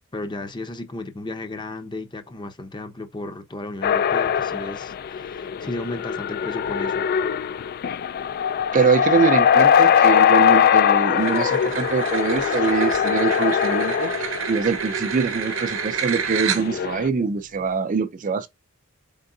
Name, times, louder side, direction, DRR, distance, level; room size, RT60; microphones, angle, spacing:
voice 1, 0.1-7.1, left 2 dB, 20° left, 0.7 m, -34 dB
sound 1, 3.8-14.8 15.5-15.7 16.2-17.1, left 8 dB, 45° left, 0.3 m, -21 dB
voice 2, 8.7-18.5, right 5 dB, 40° right, 0.4 m, -23 dB
sound 2, 9.7-13.6, left 4 dB, 70° left, 1.6 m, -40 dB
sound 3, 11.2-16.9, right 7 dB, 65° right, 0.8 m, -29 dB
4.5 x 3.7 x 2.6 m
head